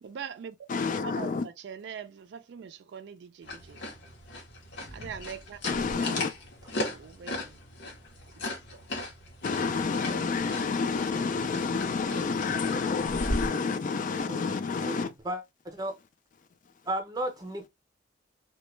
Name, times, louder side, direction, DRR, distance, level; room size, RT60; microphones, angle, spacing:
voice 1, 0.0-0.6 1.0-3.8 4.9-5.6 5.8-6.3 6.8-7.6, right 7 dB, 65° right, 0.3 m, -42 dB
voice 2, 0.7-1.5 5.6-6.3 9.4-15.1, left 4 dB, 45° left, 0.3 m, -29 dB
sound 1, 3.4-13.5, left 1 dB, 65° left, 0.8 m, -38 dB
voice 3, 14.9-16.0 16.9-17.7, right 1 dB, 20° right, 0.6 m, -34 dB
2.2 x 2.0 x 3.0 m
head